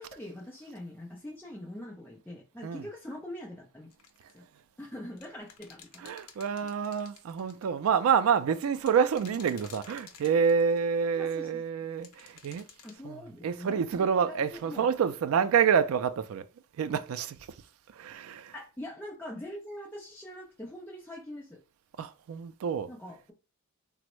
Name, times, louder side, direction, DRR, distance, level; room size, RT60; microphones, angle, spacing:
voice 1, 0.0-3.9 4.3-4.4 4.8-6.1 11.1-11.6 12.8-14.9 18.5-21.6 22.9-23.3, left 1 dB, 10° left, 0.5 m, -43 dB
sound 1, 3.9-4.4 5.2-7.6 8.8-10.8 12.0-13.0, left 7 dB, 90° left, 0.6 m, -52 dB
voice 2, 6.0-12.7 13.0-16.5 16.8-17.4 17.9-18.5 22.0-22.9, right 7 dB, 70° right, 0.3 m, -28 dB
3.4 x 2.0 x 3.0 m
head